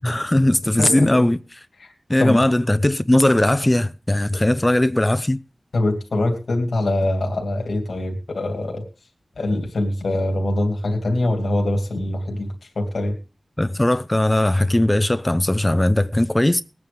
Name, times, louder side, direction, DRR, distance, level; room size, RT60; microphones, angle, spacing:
voice 1, 0.0-1.4 2.1-5.4 13.6-16.6, left 1 dB, 15° left, 0.5 m, -18 dB
voice 2, 0.8-1.2 1.8-1.9 2.2-2.4 5.7-8.8 9.4-13.2, left 1 dB, 80° left, 2.6 m, -23 dB
20.5 x 9.2 x 3.4 m
wide cardioid pair, 80°, 0 cm